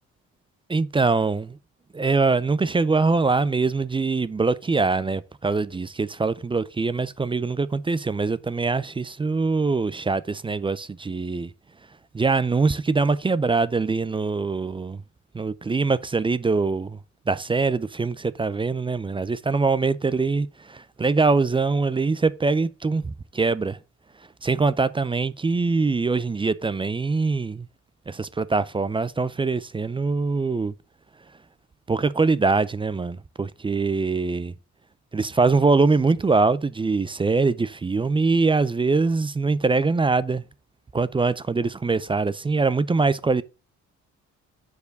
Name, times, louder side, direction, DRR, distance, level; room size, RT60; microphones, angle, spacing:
voice 1, 0.7-1.6 1.9-11.5 12.1-15.0 15.3-17.0 17.3-23.8 24.4-27.7 28.1-30.7 31.9-34.5 35.1-40.4 40.9-43.4, right 4 dB, 15° right, 0.4 m, -23 dB
6.9 x 4.8 x 6.5 m
cardioid pair, 90°, 30 cm